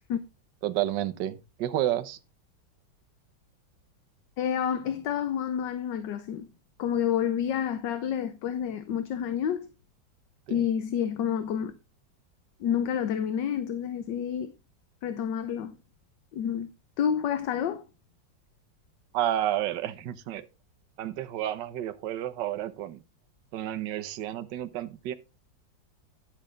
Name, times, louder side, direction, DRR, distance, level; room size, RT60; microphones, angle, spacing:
voice 1, 0.6-2.2 10.5-10.7 19.1-20.4 21.0-23.0 23.5-25.1, right 12 dB, 70° right, 1.5 m, -30 dB
voice 2, 4.4-6.5 6.8-9.6 10.5-11.7 12.6-14.5 15.0-15.8 16.3-16.7 17.0-17.8, left 9 dB, 70° left, 1.4 m, -29 dB
10.5 x 7.5 x 3.8 m
omnidirectional pair, 2.1 m